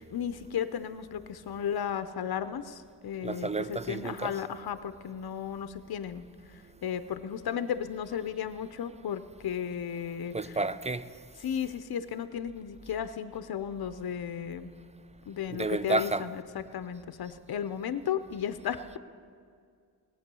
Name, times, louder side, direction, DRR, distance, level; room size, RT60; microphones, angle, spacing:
voice 1, 0.0-10.3 11.4-14.7 15.3-19.0, left 8 dB, 65° left, 0.7 m, -34 dB
voice 2, 3.2-4.4 10.3-11.0 15.5-16.3, right 3 dB, 15° right, 0.5 m, -31 dB
18.0 x 8.9 x 6.8 m
wide cardioid pair, 80°, 39 cm